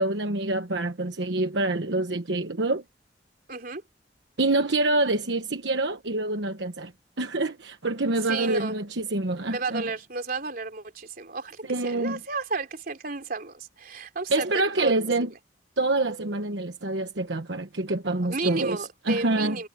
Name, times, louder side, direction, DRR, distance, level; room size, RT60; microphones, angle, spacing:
voice 1, 0.0-2.8 4.4-6.9 7.2-9.8 11.6-12.2 14.3-15.3 15.8-19.6, right 2 dB, 75° right, 1.2 m, -26 dB
voice 2, 3.5-3.8 8.3-8.7 9.5-14.9 18.3-19.7, right 3 dB, 55° right, 3.4 m, -32 dB
head